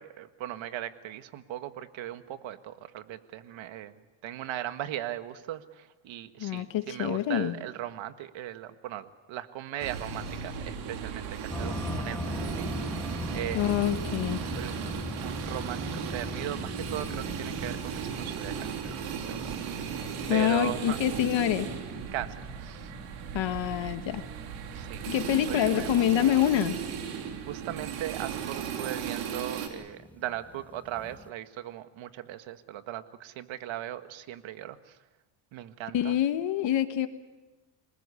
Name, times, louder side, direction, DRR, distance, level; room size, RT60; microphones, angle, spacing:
voice 1, 0.0-14.0 14.4-14.8 15.1-20.0 20.3-21.0 22.1-22.9 24.7-26.4 27.5-35.0 35.5-36.2, right 12 dB, 65° right, 10 dB, 1.8 m, -38 dB
voice 2, 6.4-7.6 13.5-14.4 20.3-21.7 23.3-24.2 25.1-26.8 35.9-37.1, left 11 dB, 60° left, 9 dB, 1.6 m, -26 dB
sound 1, 9.8-29.7, right 7 dB, 90° right, 3.5 m, -36 dB
sound 2, 11.5-31.3, left 2 dB, 5° left, 1.3 m, -41 dB
27.5 x 19.5 x 8.4 m, 1.1 s
cardioid pair, 110°, 50 cm